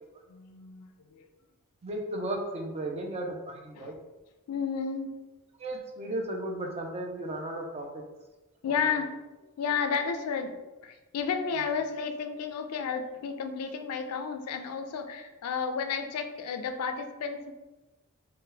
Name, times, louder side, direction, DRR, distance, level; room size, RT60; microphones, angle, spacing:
voice 1, 0.3-1.3 3.8-4.0 4.5-5.1 8.6-9.2 9.4-17.5, left 6 dB, 75° left, 7 dB, 0.3 m, -32 dB
voice 2, 1.8-4.0 5.6-8.0 8.7-8.8, right 1 dB, 30° right, 2 dB, 0.4 m, -35 dB
2.7 x 2.1 x 3.7 m, 1.1 s
head